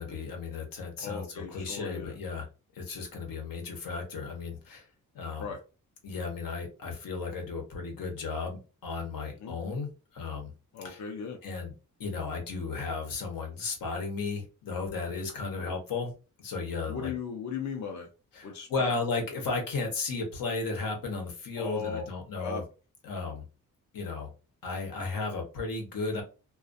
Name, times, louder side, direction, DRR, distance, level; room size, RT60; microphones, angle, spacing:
voice 1, 0.0-2.5 2.7-4.9 5.1-5.5 6.0-9.9 10.1-10.5 10.8-11.0 11.4-11.7 12.0-16.1 16.4-17.1 18.3-22.6 23.0-23.4 23.9-24.3 24.6-26.2, left 4 dB, 85° left, 1.0 m, -34 dB
voice 2, 1.0-2.2 5.4-5.6 9.4-9.6 10.7-11.4 16.9-18.1 18.4-19.0 21.6-22.0 22.4-22.7, left 6 dB, 55° left, 0.6 m, -37 dB
2.3 x 2.3 x 2.5 m
wide cardioid pair, 120°, 33 cm